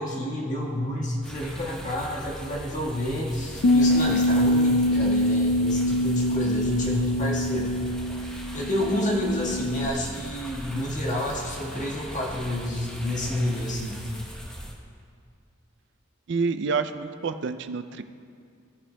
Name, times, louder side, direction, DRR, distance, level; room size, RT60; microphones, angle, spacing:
voice 1, 0.0-7.8 8.5-14.0, left 1 dB, 35° left, -3 dB, 1.5 m, -29 dB
sound 1, 1.2-14.7, equal, 5° left, 0.9 m, -40 dB
Bass guitar, 3.6-9.9, left 1 dB, 60° left, 0.4 m, -24 dB
voice 2, 16.3-18.0, right 4 dB, 55° right, 10 dB, 0.4 m, -28 dB
16.0 x 9.8 x 2.2 m, 2.3 s
head